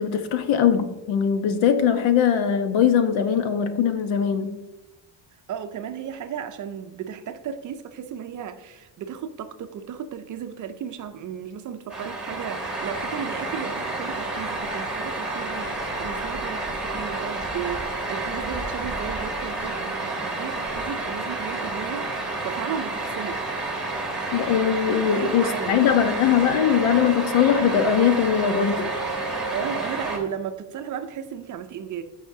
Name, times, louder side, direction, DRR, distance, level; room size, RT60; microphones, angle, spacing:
voice 1, 0.0-4.5 24.3-28.9, left 8 dB, 85° left, 1.0 m, -21 dB
voice 2, 5.5-23.4 25.0-26.0 29.5-32.0, right 8 dB, 40° right, 0.5 m, -35 dB
sound 1, 11.9-30.2, right 2 dB, ahead, 1.1 m, -30 dB
13.5 x 5.5 x 2.7 m
cardioid pair, 170°, 46 cm